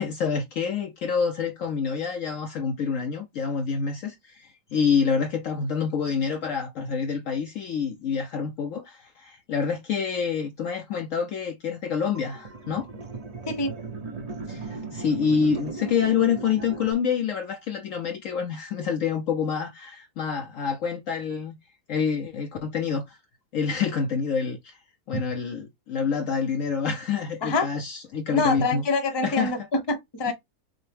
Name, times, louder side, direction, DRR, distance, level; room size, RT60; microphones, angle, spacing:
voice 1, 0.0-12.9 14.5-21.6 21.9-23.2 23.5-24.8 25.1-28.8 29.2-29.5 30.3-30.4, left 6 dB, 65° left, 0.8 m, -27 dB
sound 1, 12.1-16.9, right 3 dB, 35° right, 0.6 m, -36 dB
voice 2, 28.3-30.3, left 3 dB, 25° left, 0.6 m, -25 dB
6.1 x 2.1 x 3.3 m
omnidirectional pair, 1.8 m